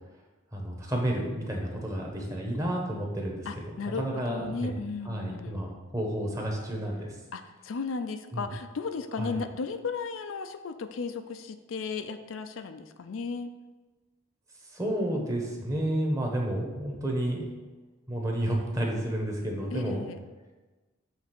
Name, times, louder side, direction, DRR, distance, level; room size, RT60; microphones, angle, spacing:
voice 1, 0.5-3.5 3.8-4.7 5.0-7.1 8.3-8.5 9.2-9.4 14.7-17.5 18.1-20.0, right 1 dB, 15° right, -1 dB, 1.1 m, -31 dB
voice 2, 3.5-5.6 7.3-13.5 19.7-20.2, left 4 dB, 75° left, 9 dB, 0.4 m, -35 dB
7.2 x 3.5 x 6.0 m, 1.2 s
head